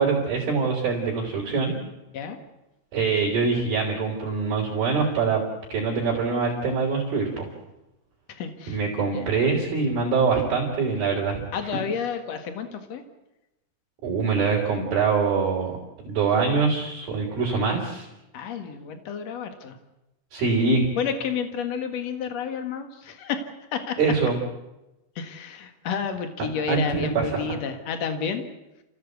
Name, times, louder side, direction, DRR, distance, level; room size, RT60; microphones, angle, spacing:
voice 1, 0.0-1.7 2.9-5.4 5.7-7.5 8.7-11.4 14.0-15.8 16.0-18.1 20.3-20.9 24.0-24.3 26.7-27.4, right 4 dB, 50° right, -2 dB, 5.0 m, -24 dB
voice 2, 8.3-9.3 11.5-13.0 18.3-19.8 21.0-24.0 25.1-28.4, left 6 dB, 90° left, 7 dB, 1.4 m, -31 dB
29.5 x 15.5 x 8.2 m, 0.98 s
omnidirectional pair, 5.9 m